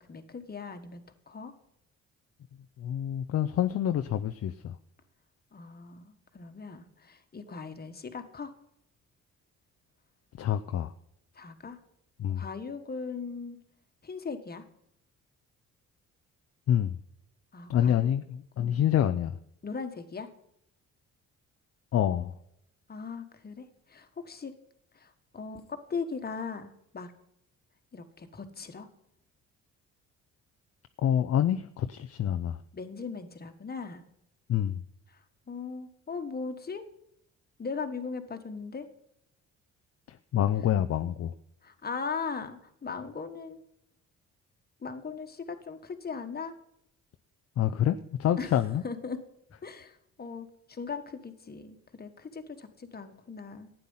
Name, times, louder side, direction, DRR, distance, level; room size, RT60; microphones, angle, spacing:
voice 1, 0.0-1.5 5.5-8.5 11.3-11.8 12.3-13.6 14.0-14.6 17.5-18.1 18.6-18.8 19.6-20.3 22.9-24.5 24.9-27.1 27.9-28.9 32.7-34.1 35.1-36.8 37.6-38.9 41.6-43.6 44.8-46.5 48.4-48.5 48.8-49.2 49.6-53.7, left 5 dB, 30° left, 7 dB, 1.5 m, -39 dB
voice 2, 2.8-4.8 10.4-10.9 12.2-12.4 16.7-17.0 17.7-19.4 21.9-22.3 31.0-32.6 34.5-34.8 40.1-41.3 47.6-48.8, left 10 dB, 55° left, 9 dB, 0.6 m, -27 dB
12.0 x 9.2 x 5.6 m, 0.77 s
cardioid pair, 90°, 30 cm